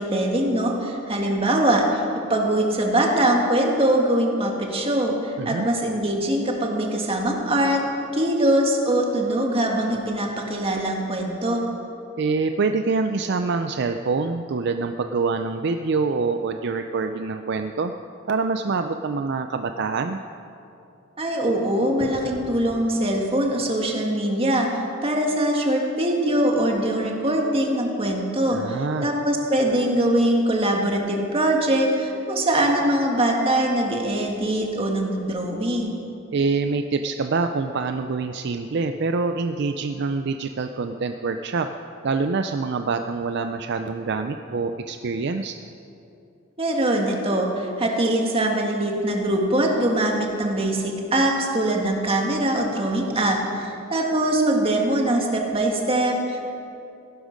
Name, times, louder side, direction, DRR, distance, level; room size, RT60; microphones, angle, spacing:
voice 1, 0.0-2.0 2.3-7.8 8.1-11.6 21.2-35.9 46.6-56.4, right 1 dB, 30° right, 1 dB, 1.7 m, -22 dB
voice 2, 5.4-5.7 12.2-17.9 18.3-20.2 28.5-29.1 36.3-41.7 42.0-45.5, right 4 dB, 55° right, 7 dB, 0.4 m, -25 dB
Explosion, 22.0-23.6, equal, 10° left, 2.8 m, -43 dB
16.0 x 11.5 x 5.2 m, 2.7 s
head